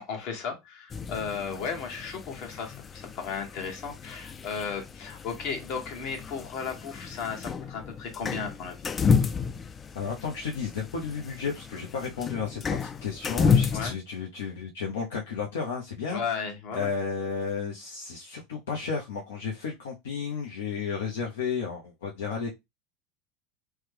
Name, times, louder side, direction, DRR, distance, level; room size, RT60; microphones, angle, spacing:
voice 1, 0.1-8.9 13.7-13.9 16.1-16.9, left 6 dB, 60° left, 1.2 m, -35 dB
sound 1, 0.9-13.9, left 6 dB, 25° left, 0.3 m, -31 dB
voice 2, 9.9-16.2 16.7-22.5, left 6 dB, 80° left, 0.7 m, -33 dB
3.1 x 2.2 x 3.3 m
hypercardioid pair, 95°, 0 cm